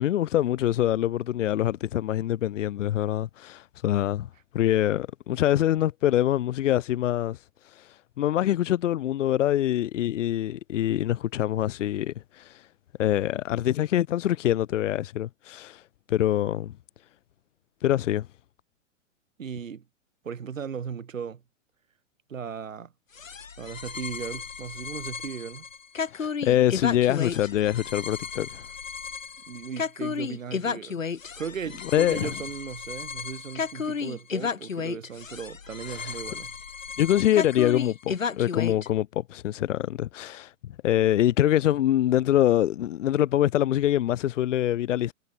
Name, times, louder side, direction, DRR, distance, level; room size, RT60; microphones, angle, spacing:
voice 1, 0.0-4.3 4.5-7.4 7.7-12.6 13.0-15.8 16.1-16.7 17.8-18.3 26.1-28.6 31.9-32.3 35.9-36.1 37.0-40.5 40.8-45.1, left 12 dB, 70° left, 0.8 m, -24 dB
voice 2, 19.4-19.8 20.2-21.4 22.3-22.9 23.6-25.7 29.5-31.0 31.3-36.5, right 7 dB, 85° right, 5.7 m, -37 dB
sound 1, 23.1-38.9, left 6 dB, 90° left, 4.0 m, -33 dB
hypercardioid pair, 120°, 38 cm